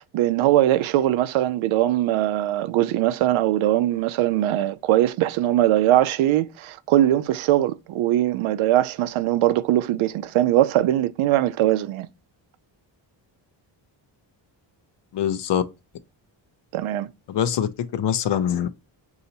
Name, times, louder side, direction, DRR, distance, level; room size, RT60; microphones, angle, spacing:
voice 1, 0.0-12.1 16.7-17.1, right 13 dB, 80° right, 0.5 m, -21 dB
voice 2, 15.1-15.6 17.3-18.7, left 9 dB, 60° left, 0.7 m, -23 dB
5.3 x 2.8 x 2.7 m
cardioid pair, 85°, 48 cm